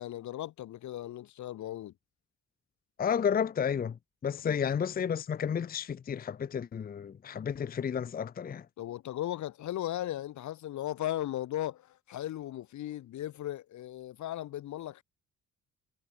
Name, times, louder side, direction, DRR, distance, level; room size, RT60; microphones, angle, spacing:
voice 1, 0.0-1.9 4.4-4.6 8.8-15.0, left 13 dB, 70° left, 1.3 m, -37 dB
voice 2, 3.0-8.7, left 7 dB, 30° left, 0.6 m, -32 dB
cardioid pair, 90°, 30 cm